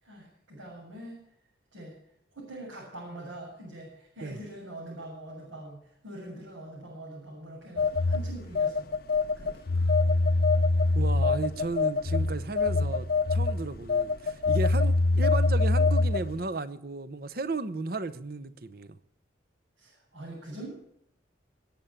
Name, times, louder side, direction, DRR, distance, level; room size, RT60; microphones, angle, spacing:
voice 1, 0.0-1.2 1.7-1.9 2.3-8.9 9.4-9.7 19.8-20.8, right 1 dB, 90° right, 8.0 m, -43 dB
Telephone, 7.8-16.4, left 3 dB, 50° left, 0.6 m, -24 dB
voice 2, 10.9-19.0, right 3 dB, 50° right, 0.8 m, -34 dB
21.0 x 9.0 x 7.2 m
head